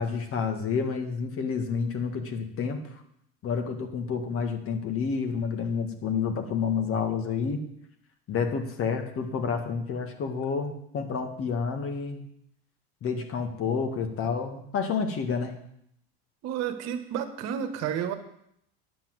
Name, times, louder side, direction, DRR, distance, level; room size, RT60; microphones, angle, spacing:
voice 1, 0.0-2.8 3.4-7.6 8.3-12.2 13.0-15.5, left 5 dB, 45° left, 6 dB, 1.8 m, -29 dB
voice 2, 16.4-18.1, right 9 dB, 60° right, 8 dB, 1.4 m, -31 dB
10.0 x 5.9 x 7.9 m, 0.73 s
supercardioid pair, 95°, 30 cm